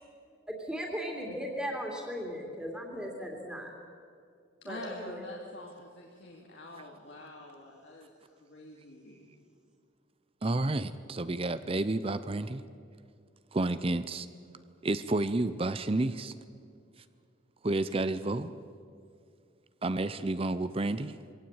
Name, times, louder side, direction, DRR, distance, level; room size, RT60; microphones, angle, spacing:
voice 1, 0.5-3.7 4.6-5.2, equal, 5° right, 2.9 m, -37 dB
voice 2, 4.6-8.1 8.4-9.3, left 2 dB, 70° left, 2.5 m, -46 dB
voice 3, 10.4-12.6 13.5-14.3 14.8-16.3 17.6-18.5 19.8-21.1, right 2 dB, 30° right, 0.6 m, -30 dB
23.5 x 17.5 x 8.8 m
head